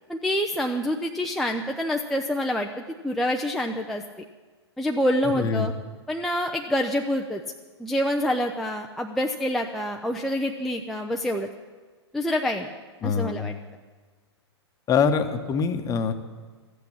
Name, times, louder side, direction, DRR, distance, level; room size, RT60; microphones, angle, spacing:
voice 1, 0.1-4.0 4.8-5.7 6.1-7.4 7.8-11.5 12.1-12.7 13.0-13.5, left 1 dB, ahead, 1 dB, 0.5 m, -26 dB
voice 2, 5.3-5.7 13.0-13.5 14.9-16.1, left 6 dB, 25° left, 7 dB, 1.0 m, -24 dB
14.0 x 8.4 x 8.7 m, 1.4 s
figure-of-eight pair, 110°, 14 cm